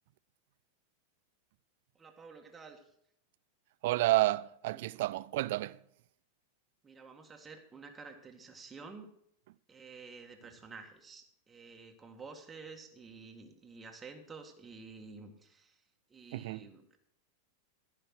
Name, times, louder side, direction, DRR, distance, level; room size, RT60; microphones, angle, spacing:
voice 1, 2.0-2.8 4.7-4.8 6.8-9.1 9.7-15.8 16.1-17.0, right 4 dB, 15° right, 1.8 m, -50 dB
voice 2, 3.8-5.8 16.3-16.7, right 17 dB, 50° right, 0.3 m, -30 dB
15.0 x 5.8 x 6.1 m
figure-of-eight pair, 90°, 0 cm